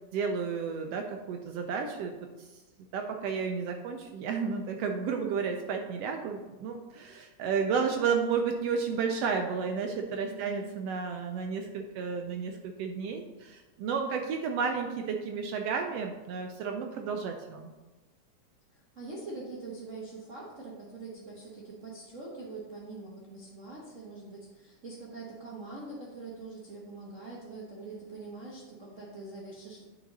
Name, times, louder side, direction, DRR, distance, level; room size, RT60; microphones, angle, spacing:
voice 1, 0.1-2.5 2.9-17.7, right 5 dB, 80° right, 4 dB, 1.4 m, -32 dB
voice 2, 10.3-10.7 18.7-29.8, right 3 dB, 55° right, -6 dB, 0.8 m, -44 dB
8.9 x 4.7 x 4.0 m, 1.1 s
omnidirectional pair, 3.4 m